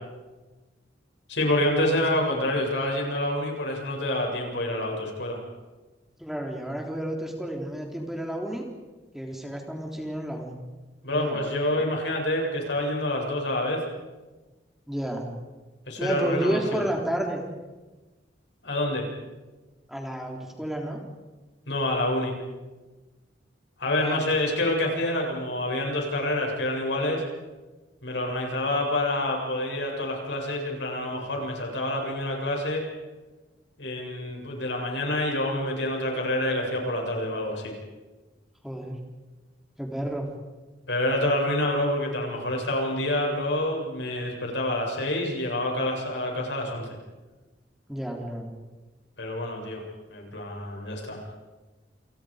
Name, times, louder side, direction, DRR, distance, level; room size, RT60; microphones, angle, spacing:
voice 1, 1.3-5.4 11.0-13.8 15.9-16.8 18.6-19.1 21.7-22.4 23.8-27.2 28.0-32.8 33.8-37.7 40.9-46.9 49.2-49.8 50.1-51.3, left 1 dB, 75° left, 0 dB, 7.6 m, -27 dB
voice 2, 6.2-8.6 9.1-10.5 11.1-11.4 14.9-15.3 16.0-17.4 19.9-21.0 24.0-24.2 34.3-34.4 38.6-38.9 39.8-40.3 47.9-48.5, right 1 dB, ahead, 0 dB, 3.6 m, -31 dB
29.0 x 29.0 x 5.2 m, 1.2 s
head